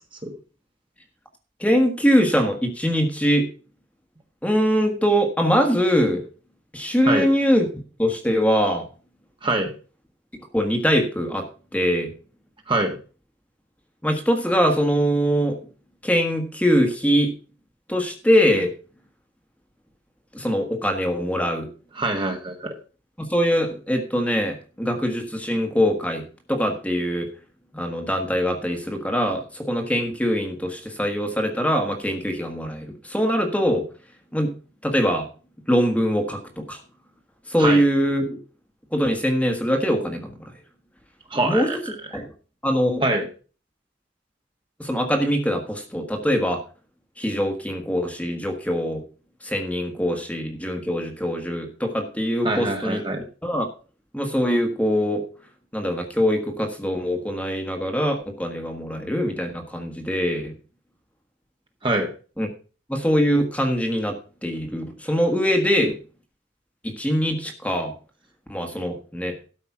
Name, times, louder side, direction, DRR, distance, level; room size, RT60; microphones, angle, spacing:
voice 1, 1.6-3.5 4.4-6.2 6.7-7.7 8.0-8.8 10.5-11.5 11.7-12.1 14.0-15.6 16.0-17.3 17.9-18.7 20.3-21.7 23.2-26.2 26.5-27.3 27.7-33.9 34.3-34.5 34.8-35.3 35.7-36.8 37.5-38.4 38.9-40.3 41.4-41.7 42.1-42.3 42.6-43.0 44.8-46.6 47.2-49.0 49.4-53.0 53.4-53.7 54.1-55.2 55.7-60.5 62.4-62.5 62.9-64.1 64.4-66.0 66.8-67.9 68.5-69.3, equal, 5° left, 3 dB, 1.5 m, -22 dB
voice 2, 9.4-9.7 12.7-13.0 21.9-22.7 37.6-37.8 41.3-41.8 42.1-42.2 43.0-43.3 52.4-53.2 61.8-62.1, right 2 dB, 25° right, 3 dB, 1.5 m, -24 dB
12.5 x 5.3 x 5.9 m, 0.37 s
head